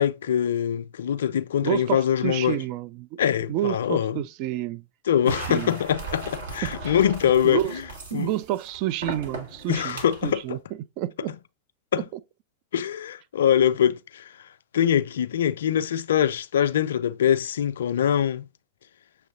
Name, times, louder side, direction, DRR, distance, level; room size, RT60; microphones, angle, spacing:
voice 1, 0.0-2.6 3.2-4.2 5.1-7.8 8.1-8.3 9.7-10.4 11.9-12.0 12.7-14.3 14.7-18.5, left 9 dB, 65° left, 0.3 m, -23 dB
voice 2, 1.6-3.2 3.5-4.8 5.2-5.8 6.6-7.0 7.4-7.8 8.1-10.6 11.0-11.4 12.0-12.2, right 14 dB, 45° right, 0.4 m, -29 dB
sound 1, 5.2-10.4, right 2 dB, 65° right, 1.4 m, -38 dB
6.4 x 3.2 x 2.5 m
figure-of-eight pair, 90°, 0 cm